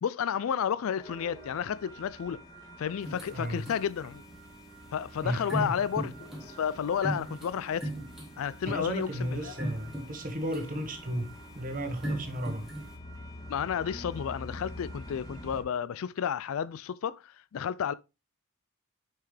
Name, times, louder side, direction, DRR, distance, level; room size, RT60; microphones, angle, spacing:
voice 1, 0.0-2.4 2.8-4.2 4.9-6.1 6.4-7.9 8.4-9.5 13.5-17.9, left 8 dB, 70° left, 0.3 m, -31 dB
sound 1, 1.0-15.6, equal, 15° left, 1.5 m, -47 dB
sound 2, 3.0-13.0, right 1 dB, ahead, 1.5 m, -40 dB
voice 2, 3.3-3.6 5.2-5.8 8.6-12.7, equal, 40° right, 1.3 m, -34 dB
6.9 x 5.7 x 3.2 m
head